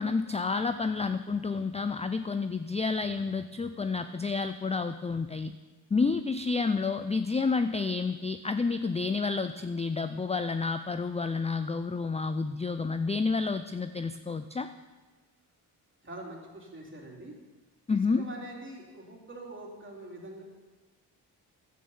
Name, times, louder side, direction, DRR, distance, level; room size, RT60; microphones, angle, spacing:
voice 1, 0.0-5.5 5.9-14.7 17.9-18.2, left 4 dB, 15° left, 10 dB, 0.4 m, -30 dB
voice 2, 16.0-17.3 17.9-20.4, right 1 dB, 30° right, -2 dB, 3.2 m, -44 dB
11.0 x 8.7 x 5.6 m, 1.3 s
cardioid pair, 70°, 42 cm